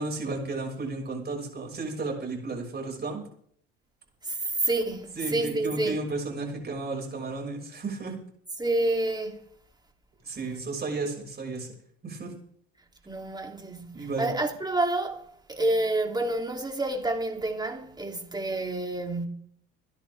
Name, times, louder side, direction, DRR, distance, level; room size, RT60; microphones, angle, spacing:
voice 1, 0.0-3.2 5.2-8.1 10.2-11.7 12.0-12.3 13.9-14.3, right 3 dB, 30° right, 6.4 m, -33 dB
voice 2, 4.2-6.0 8.6-9.4 13.1-19.3, right 2 dB, 15° right, 3.3 m, -29 dB
27.5 x 10.5 x 3.6 m
hypercardioid pair, 70°, 31 cm